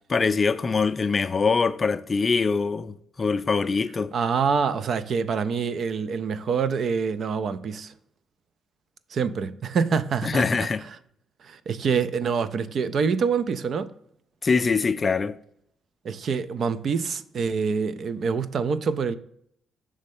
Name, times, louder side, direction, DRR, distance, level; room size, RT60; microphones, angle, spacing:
voice 1, 0.1-4.1 10.2-10.8 14.4-15.3, left 4 dB, 35° left, 0.4 m, -23 dB
voice 2, 4.1-7.9 9.1-10.7 11.4-13.9 16.0-19.2, right 5 dB, 55° right, 0.4 m, -26 dB
6.4 x 3.2 x 5.3 m
cardioid pair, 90°, 0 cm